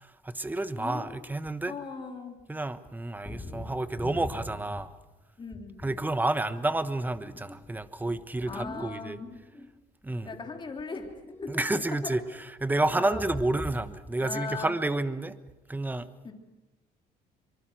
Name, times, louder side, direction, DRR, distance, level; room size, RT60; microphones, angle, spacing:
voice 1, 0.2-1.7 2.5-4.9 5.8-9.2 10.0-10.3 11.5-12.2 12.6-15.4 15.7-16.1, right 2 dB, 10° right, 12 dB, 1.2 m, -30 dB
voice 2, 0.8-1.2 1.7-2.4 5.4-6.0 8.5-9.2 10.3-11.1 11.4-11.6 12.0-12.2 12.9-13.3 14.2-14.8 16.2-16.3, left 4 dB, 30° left, 3 dB, 3.5 m, -38 dB
sound 1, 3.3-5.0 5.5-6.2 6.6-9.7 10.1-11.7 11.9-12.2 12.8-14.0 14.3-14.6, left 1 dB, 15° left, 2.5 m, -43 dB
24.0 x 23.5 x 6.4 m, 1.1 s
cardioid pair, 110°, 17 cm